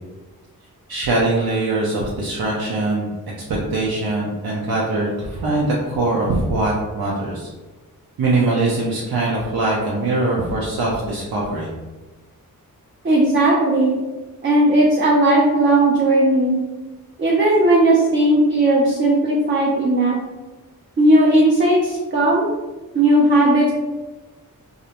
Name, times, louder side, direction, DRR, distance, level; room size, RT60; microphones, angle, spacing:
voice 1, 0.9-3.1 3.5-7.5 8.2-11.7, right 2 dB, 80° right, -4 dB, 0.5 m, -22 dB
voice 2, 13.0-14.0 14.4-16.6 17.2-20.2 21.0-22.5 22.9-23.7, right 1 dB, 30° right, -3 dB, 0.4 m, -16 dB
2.4 x 2.1 x 2.8 m, 1.2 s
wide cardioid pair, 100°, 36 cm